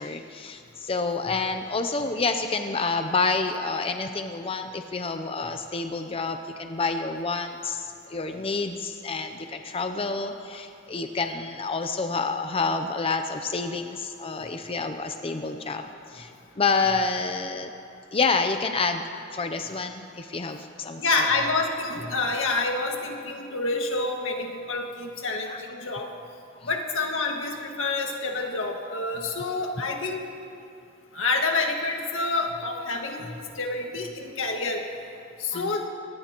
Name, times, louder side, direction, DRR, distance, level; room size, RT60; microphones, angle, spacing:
voice 1, 0.0-15.8 16.1-16.3 16.6-17.7 18.1-19.0 19.3-21.3 25.5-25.6 26.6-26.7 35.5-35.8, left 4 dB, 30° left, 6 dB, 0.6 m, -28 dB
voice 2, 21.0-26.1 26.6-30.2 31.1-34.8 35.4-35.8, left 3 dB, 85° left, 2 dB, 1.8 m, -28 dB
23.5 x 18.5 x 3.0 m, 2.5 s
head